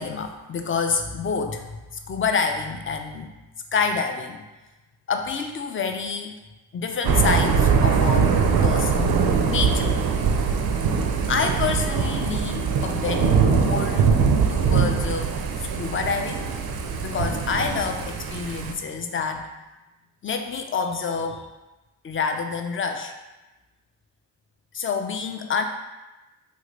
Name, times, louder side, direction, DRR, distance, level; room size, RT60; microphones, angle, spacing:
voice 1, 0.0-3.3 3.7-4.4 5.1-6.3 6.7-8.2 8.6-9.2 9.5-10.0 11.3-14.1 14.5-15.3 15.7-16.5 17.0-19.5 20.2-21.5 22.0-23.1 24.7-25.6, left 5 dB, 30° left, 5 dB, 0.4 m, -27 dB
Thunder / Rain, 7.0-18.7, right 6 dB, 55° right, 0.5 m, -22 dB
2.9 x 2.7 x 3.1 m, 1.1 s
supercardioid pair, 50°, 45 cm